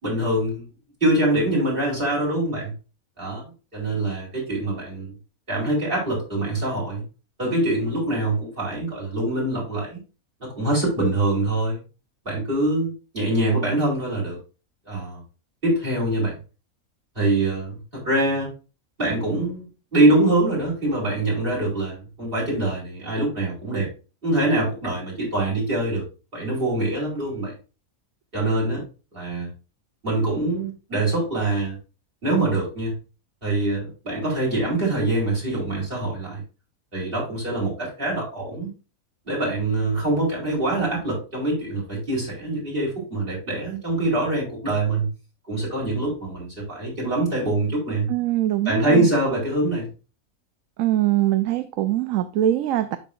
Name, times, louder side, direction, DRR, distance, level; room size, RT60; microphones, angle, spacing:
voice 1, 0.0-0.7 1.0-2.7 3.2-3.4 3.7-5.1 5.5-7.0 7.4-10.0 10.4-11.8 12.2-14.4 14.9-15.2 15.6-16.4 17.1-18.5 19.0-19.6 19.9-23.9 24.2-26.1 26.3-27.5 28.3-28.8 29.1-29.5 30.0-31.8 32.2-32.9 33.4-36.4 36.9-38.7 39.3-45.1 45.5-48.1 48.6-49.9, right 2 dB, 35° right, 4.7 m, -24 dB
voice 2, 48.1-49.1 50.8-53.0, right 13 dB, 70° right, 0.9 m, -22 dB
12.5 x 4.2 x 2.6 m
omnidirectional pair, 1.5 m